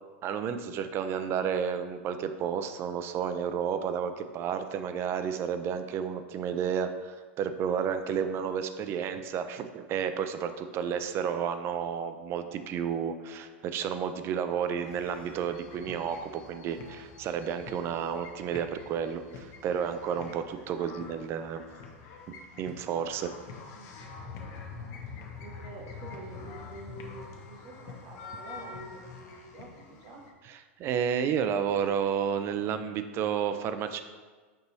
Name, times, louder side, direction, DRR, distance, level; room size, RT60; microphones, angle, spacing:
voice 1, 0.2-21.6 22.6-23.3 30.5-34.0, right 7 dB, 35° right, 9 dB, 0.3 m, -31 dB
sound 1, 14.8-30.3, left 5 dB, 45° left, 0.6 m, -46 dB
voice 2, 20.7-21.0 23.7-24.5 25.4-30.3, right 2 dB, 50° right, 0 dB, 0.9 m, -47 dB
5.3 x 2.9 x 2.7 m, 1.4 s
hypercardioid pair, 110°, 7 cm